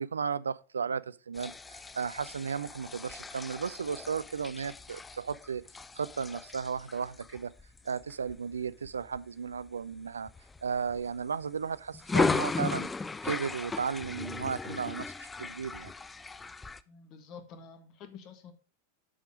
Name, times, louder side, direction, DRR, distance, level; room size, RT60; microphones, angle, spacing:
voice 1, 0.0-5.6 5.9-7.5 7.8-10.3 10.6-12.9 13.2-15.9, right 6 dB, 70° right, 0.3 m, -35 dB
sound 1, 1.3-9.2 9.7-9.9 10.3-11.4 11.9-16.8, left 4 dB, 10° left, 0.4 m, -36 dB
voice 2, 16.9-18.5, left 6 dB, 35° left, 1.5 m, -49 dB
8.6 x 5.4 x 5.0 m
figure-of-eight pair, 90°, 0 cm